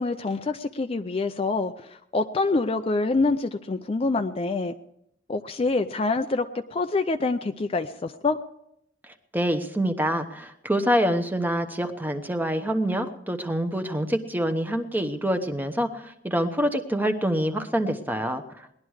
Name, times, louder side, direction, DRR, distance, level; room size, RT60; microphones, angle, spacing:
voice 1, 0.0-4.7 5.3-8.4, left 3 dB, 30° left, 8 dB, 0.4 m, -26 dB
voice 2, 9.3-18.7, equal, 10° right, 7 dB, 0.9 m, -26 dB
19.0 x 11.5 x 4.8 m, 0.78 s
head